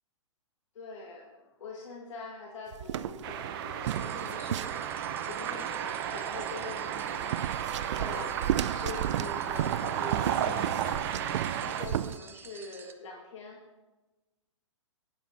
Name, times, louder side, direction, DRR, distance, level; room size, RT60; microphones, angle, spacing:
voice 1, 0.7-4.8 5.3-7.4 7.8-10.7 11.6-13.6, left 3 dB, 65° left, -1 dB, 1.6 m, -44 dB
sound 1, 2.7-5.2 6.9-12.2, right 11 dB, 60° right, 0.4 m, -34 dB
sound 2, 3.2-11.9, right 9 dB, 45° right, 0.8 m, -33 dB
sound 3, 3.8-12.9, right 6 dB, 15° right, 0.6 m, -51 dB
16.0 x 9.0 x 2.8 m, 1.2 s
hypercardioid pair, 130°, 17 cm